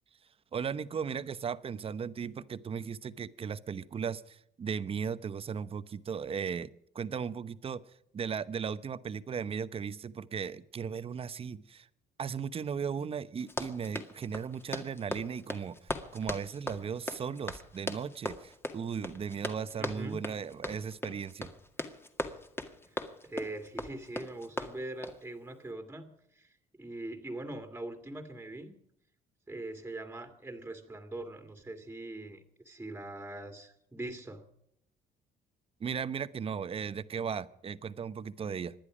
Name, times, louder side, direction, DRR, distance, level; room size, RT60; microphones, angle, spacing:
voice 1, 0.5-6.7 6.9-7.8 8.1-11.9 12.2-21.5 35.8-38.7, right 6 dB, 35° right, 14 dB, 0.9 m, -36 dB
Run, 13.4-25.2, left 1 dB, 15° left, 2.0 m, -39 dB
voice 2, 19.8-20.2 22.8-28.7 29.5-34.5, right 2 dB, 10° right, 6 dB, 2.2 m, -42 dB
26.0 x 10.5 x 5.0 m, 0.76 s
cardioid pair, 110°, 17 cm